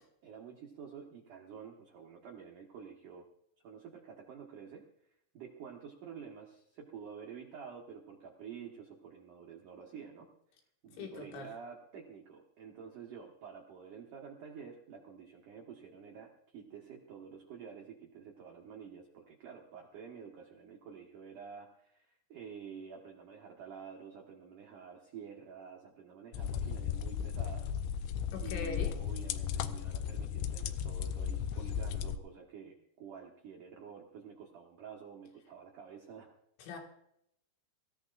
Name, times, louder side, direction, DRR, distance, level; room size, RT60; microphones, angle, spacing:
voice 1, 0.0-3.3 3.6-4.8 5.3-10.3 10.8-27.7 28.4-36.3, right 7 dB, 85° right, 0 dB, 1.8 m, -49 dB
voice 2, 10.9-11.5 28.3-29.0 36.6-36.8, left 6 dB, 70° left, 2 dB, 4.2 m, -41 dB
sound 1, 26.3-32.2, left 8 dB, 85° left, 2.6 m, -35 dB
24.5 x 14.5 x 2.5 m, 0.75 s
omnidirectional pair, 6.0 m